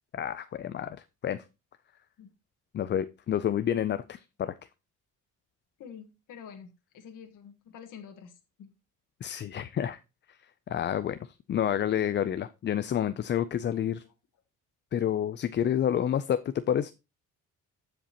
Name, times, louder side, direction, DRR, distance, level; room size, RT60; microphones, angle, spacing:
voice 1, 0.1-1.0 1.2-1.4 2.7-4.5 9.2-10.0 10.7-11.2 11.5-14.0 14.9-16.4 16.7-16.9, left 10 dB, 35° left, 12 dB, 0.4 m, -29 dB
voice 2, 5.8-8.7 13.7-13.8 14.0-14.1, left 7 dB, 65° left, 4 dB, 1.4 m, -48 dB
15.0 x 5.1 x 2.9 m, 0.26 s
cardioid pair, 140°, 33 cm